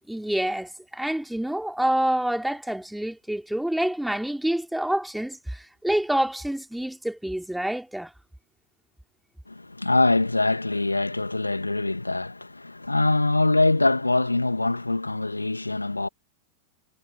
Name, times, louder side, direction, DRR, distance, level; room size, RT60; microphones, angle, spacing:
voice 1, 0.1-8.1, right 1 dB, ahead, 3.3 m, -27 dB
voice 2, 9.5-16.1, left 2 dB, 85° left, 2.6 m, -23 dB
figure-of-eight pair, 90°, 0 cm